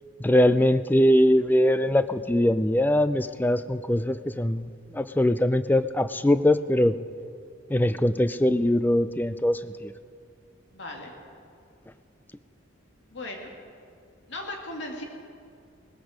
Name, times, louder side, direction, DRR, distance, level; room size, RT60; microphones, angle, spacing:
voice 1, 0.2-6.9 7.7-9.9, left 1 dB, 10° left, 13 dB, 0.4 m, -22 dB
voice 2, 10.7-11.1 13.1-13.5 14.3-15.0, left 2 dB, 65° left, 1 dB, 2.4 m, -37 dB
18.5 x 14.0 x 5.1 m, 2.3 s
head